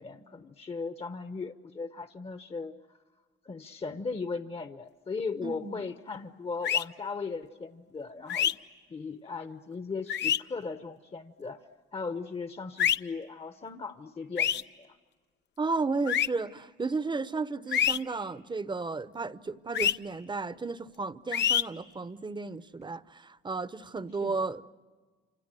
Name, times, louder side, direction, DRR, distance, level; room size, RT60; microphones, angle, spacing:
voice 1, 0.0-2.7 3.4-8.6 8.9-11.6 11.9-15.0 17.8-18.0 24.2-24.5, left 4 dB, 30° left, 1.0 m, -38 dB
voice 2, 5.4-5.7 15.6-24.7, right 3 dB, 25° right, 0.8 m, -33 dB
sound 1, 6.6-6.8 8.3-8.5 10.1-10.4 12.8-13.0 14.4-14.6 16.1-16.3 17.7-18.0 19.7-19.9 21.3-21.6, left 9 dB, 60° left, 0.8 m, -25 dB
28.0 x 27.0 x 7.6 m
cardioid pair, 90°, 20 cm